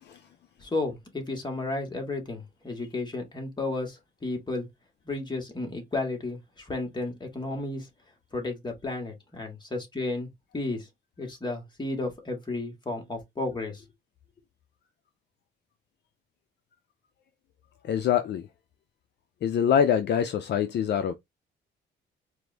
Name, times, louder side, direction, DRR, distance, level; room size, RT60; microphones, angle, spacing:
voice 1, 0.6-4.7 5.1-7.9 8.3-10.9 11.2-13.9, left 2 dB, 20° left, 1.8 m, -33 dB
voice 2, 17.9-18.5 19.4-21.1, left 8 dB, 60° left, 0.5 m, -24 dB
4.6 x 2.6 x 3.3 m
cardioid pair, 90°, 20 cm